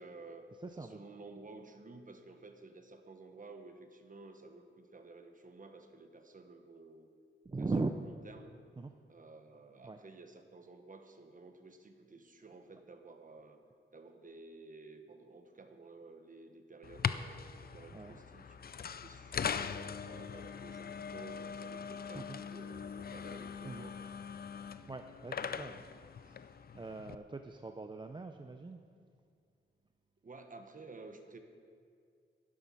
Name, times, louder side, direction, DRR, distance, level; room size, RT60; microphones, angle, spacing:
voice 1, 0.0-0.5 0.8-7.1 7.6-7.7 8.1-8.6 9.1-13.6 13.9-18.6 19.0-24.0 30.2-31.4, right 3 dB, 40° right, 6 dB, 1.2 m, -53 dB
voice 2, 0.6-1.0 7.4-8.0 8.8-8.9 9.8-10.0 17.9-18.2 22.1-22.4 23.6-23.9 24.9-25.9 26.2-28.8, right 3 dB, 20° right, 6 dB, 0.5 m, -40 dB
sound 1, 16.8-27.1, left 7 dB, 45° left, 0.4 m, -41 dB
11.5 x 11.0 x 5.6 m, 2.2 s
wide cardioid pair, 95°, 21 cm